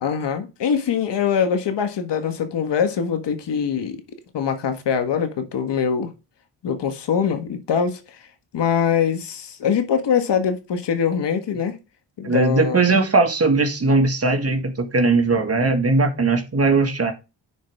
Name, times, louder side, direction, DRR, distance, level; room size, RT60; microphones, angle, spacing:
voice 1, 0.0-4.0 4.3-6.1 6.6-8.0 8.5-11.8 12.2-12.9, left 7 dB, 70° left, 1.7 m, -23 dB
voice 2, 12.2-17.1, right 3 dB, 30° right, 1.9 m, -19 dB
10.5 x 4.8 x 3.6 m
cardioid pair, 80°, 45 cm